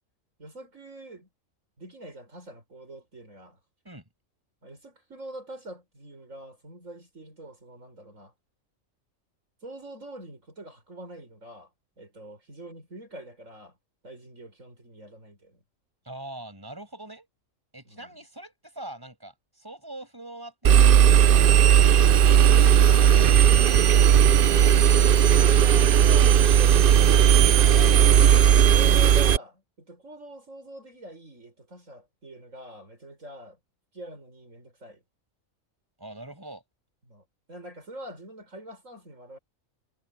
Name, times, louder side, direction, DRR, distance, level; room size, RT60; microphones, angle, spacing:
voice 1, 0.4-1.3 1.8-3.6 4.6-8.3 9.6-11.7 12.0-13.7 14.0-15.6 17.9-18.1 25.4-27.1 28.7-33.6 33.9-35.0 37.1-39.4, right 1 dB, 70° right, 6.9 m, -44 dB
voice 2, 16.0-17.3 17.7-24.9 27.6-28.3 36.0-36.6, right 1 dB, 15° right, 6.9 m, -43 dB
Engine, 20.6-29.4, right 9 dB, 55° right, 0.6 m, -16 dB
omnidirectional pair, 1.4 m